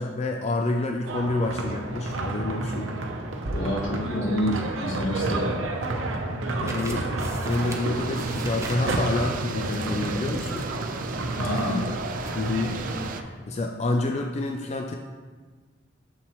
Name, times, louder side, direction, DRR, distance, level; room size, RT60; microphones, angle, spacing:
voice 1, 0.0-2.9 6.6-7.1 7.5-10.7 12.4-12.8 13.2-14.9, left 2 dB, 35° left, 3 dB, 0.4 m, -28 dB
sound 1, 1.1-13.2, right 2 dB, 80° right, 0.8 m, -30 dB
voice 2, 3.5-5.5 11.3-11.8, left 1 dB, 80° left, -2 dB, 1.6 m, -28 dB
sound 2, 6.7-12.4, right 2 dB, 15° right, 0.7 m, -42 dB
sound 3, 7.5-13.2, right 5 dB, 45° right, 0.4 m, -37 dB
7.1 x 6.8 x 3.1 m, 1.4 s
head